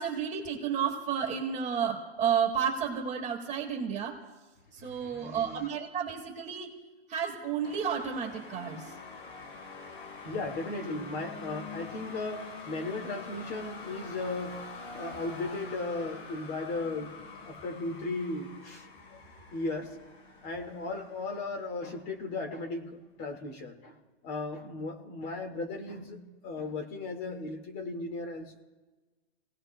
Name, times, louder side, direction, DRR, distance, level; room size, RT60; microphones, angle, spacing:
voice 1, 0.0-4.2 4.8-6.7 7.1-8.9, right 7 dB, 20° right, 2 dB, 2.0 m, -31 dB
voice 2, 4.8-5.7 10.2-19.2 19.5-20.0 20.4-24.0 24.2-28.6, left 2 dB, 30° left, 3 dB, 1.9 m, -36 dB
sound 1, 7.6-22.5, left 4 dB, 70° left, 5.4 m, -46 dB
29.5 x 17.5 x 2.2 m, 1.2 s
hypercardioid pair, 140°, 33 cm